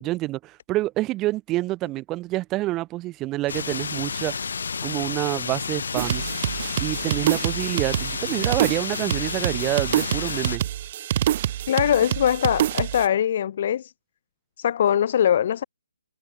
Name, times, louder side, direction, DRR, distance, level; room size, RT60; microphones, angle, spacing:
voice 1, 0.0-4.3 4.8-6.3 6.8-10.6, right 17 dB, 15° right, 1.3 m, -27 dB
sound 1, 3.5-10.6, left 5 dB, 65° left, 6.5 m, -31 dB
sound 2, 5.9-13.1, right 12 dB, 35° right, 1.0 m, -27 dB
voice 2, 11.7-13.9 14.6-15.6, left 9 dB, 45° left, 1.1 m, -22 dB
hypercardioid pair, 155°, 0 cm